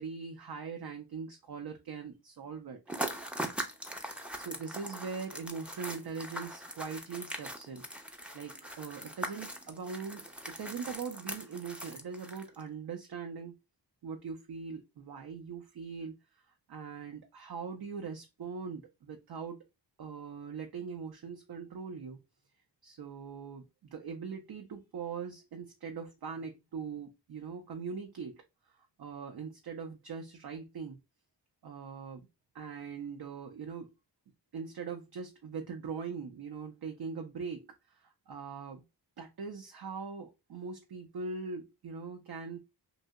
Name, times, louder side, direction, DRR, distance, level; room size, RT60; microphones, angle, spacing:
voice 1, 0.0-2.8 4.4-7.9 8.1-13.5 14.0-16.1 16.5-19.6 20.0-22.2 22.8-28.4 28.7-31.0 31.6-32.3 32.5-33.9 34.5-38.8 39.2-42.6, right 5 dB, 60° right, 3 dB, 0.6 m, -41 dB
sound 1, 2.9-12.6, right 1 dB, 5° right, 0.5 m, -41 dB
2.8 x 2.0 x 3.4 m, 0.25 s
cardioid pair, 55°, 44 cm